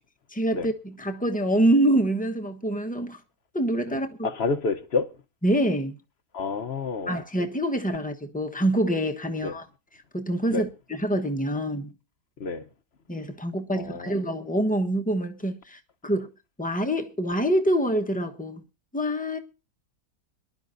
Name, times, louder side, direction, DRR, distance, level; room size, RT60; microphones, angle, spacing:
voice 1, 0.3-3.2 3.5-4.3 5.4-6.0 7.1-9.7 10.1-11.9 13.1-16.3 16.6-18.6 18.9-19.4, right 1 dB, 5° left, 0.9 m, -26 dB
voice 2, 3.9-5.1 6.3-7.2 9.4-9.5 10.5-10.7 12.4-12.6 13.7-14.2, left 4 dB, 45° left, 1.0 m, -29 dB
23.5 x 11.5 x 2.6 m
omnidirectional pair, 1.7 m